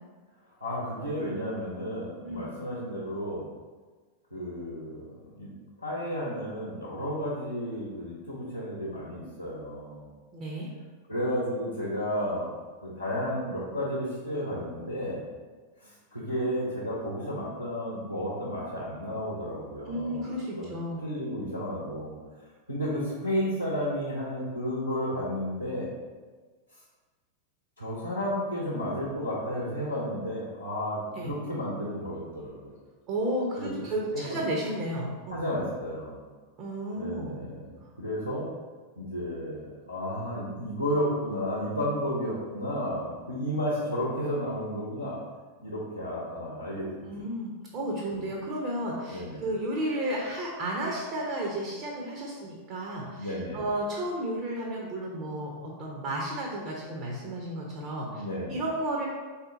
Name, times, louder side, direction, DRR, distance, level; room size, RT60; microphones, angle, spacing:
voice 1, 0.6-3.5 4.3-5.5 5.8-10.1 11.1-12.5 12.8-15.2 15.8-20.2 20.6-20.7 21.0-22.2 22.7-25.9 27.8-32.7 33.6-33.8 34.1-34.4 35.3-36.2 37.0-38.5 39.0-45.2 45.6-46.9 48.2-48.3 49.1-49.4 53.2-53.6 58.1-58.6, equal, 85° left, -6 dB, 0.8 m, -32 dB
voice 2, 10.3-10.7 19.9-21.0 31.1-31.3 33.1-35.4 36.6-37.4 47.1-58.2 58.5-59.1, right 1 dB, 40° right, -2 dB, 0.6 m, -33 dB
3.6 x 2.8 x 3.8 m, 1.4 s
figure-of-eight pair, 90°, 0 cm